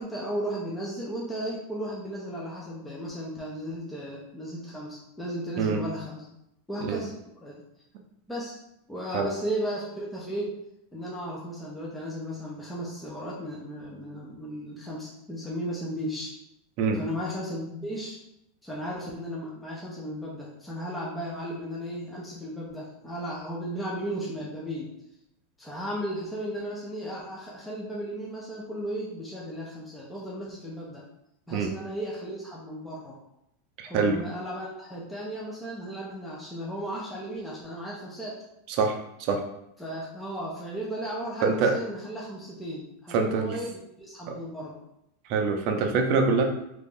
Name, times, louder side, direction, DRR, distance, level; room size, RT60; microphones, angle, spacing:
voice 1, 0.0-6.2 6.7-7.1 7.4-7.5 8.3-8.6 8.9-10.5 10.9-16.4 16.9-18.2 18.6-24.9 25.6-31.0 31.5-33.2 33.8-38.4 39.8-44.8, equal, 5° left, -5 dB, 0.6 m, -35 dB
voice 2, 33.8-34.2 38.7-39.0 39.3-39.4 41.4-41.7 43.1-43.6 44.3-44.4 45.3-46.4, right 4 dB, 45° right, 3 dB, 0.5 m, -24 dB
2.9 x 2.6 x 3.7 m, 0.82 s
supercardioid pair, 150°, 0 cm